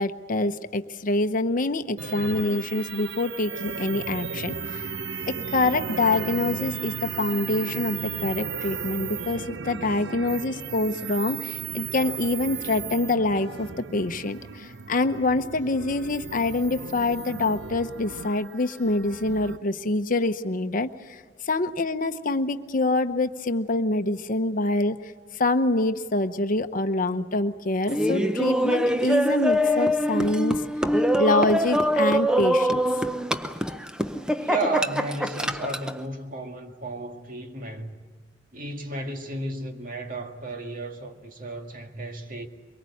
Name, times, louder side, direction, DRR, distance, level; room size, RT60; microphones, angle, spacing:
voice 1, 0.0-4.8 5.3-25.0 25.3-30.6 31.2-32.8, left 2 dB, 50° left, 0.9 m, -26 dB
sound 1, 2.0-19.6, right 6 dB, 70° right, 0.7 m, -35 dB
Laughter, 27.9-36.0, equal, 5° right, 0.7 m, -24 dB
voice 2, 34.4-38.0 38.5-42.5, right 2 dB, 50° right, 2.1 m, -33 dB
23.5 x 23.0 x 8.5 m
head